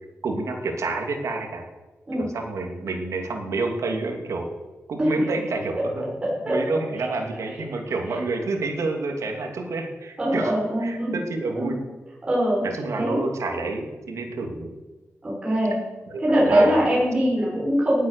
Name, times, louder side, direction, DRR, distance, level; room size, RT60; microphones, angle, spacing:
voice 1, 0.2-1.7 2.1-4.5 4.9-6.1 6.4-10.5 10.8-11.8 12.6-14.7 16.1-16.9, right 3 dB, 75° right, 3 dB, 2.8 m, -29 dB
voice 2, 6.2-6.6 6.9-7.1 10.2-11.2 11.5-11.8 12.3-12.6 13.0-13.2 15.2-15.8 16.2-18.1, equal, 20° right, -6 dB, 5.8 m, -22 dB
18.5 x 8.4 x 6.8 m, 1.2 s
wide cardioid pair, 145°, 5 cm